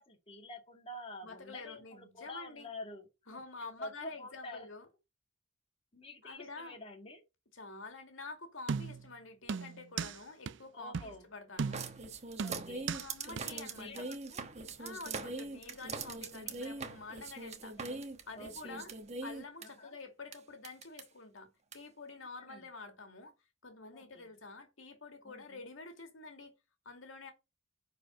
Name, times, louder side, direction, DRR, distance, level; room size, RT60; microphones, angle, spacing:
voice 1, 0.0-4.7 5.9-7.2 10.7-11.3 12.4-12.9 13.5-14.4 17.8-18.0 18.3-18.8 19.6-20.0 22.2-22.7 23.9-24.3 25.2-25.6, left 2 dB, 30° left, 2.1 m, -48 dB
voice 2, 1.2-2.7 3.3-4.9 6.2-6.8 7.5-12.0 12.9-14.0 14.8-17.9 18.3-18.9 19.2-23.3 23.6-26.5 26.8-27.3, left 3 dB, 90° left, 2.4 m, -48 dB
sound 1, 8.7-9.1 9.5-10.2 10.5-10.6 10.9-11.2 11.6-12.0 12.4-13.1 13.4-13.5, right 5 dB, 65° right, 0.4 m, -37 dB
sound 2, 11.7-19.7 20.3-20.4 20.6-21.0 21.7-21.8, right 3 dB, 35° right, 1.2 m, -42 dB
10.0 x 4.9 x 5.4 m
head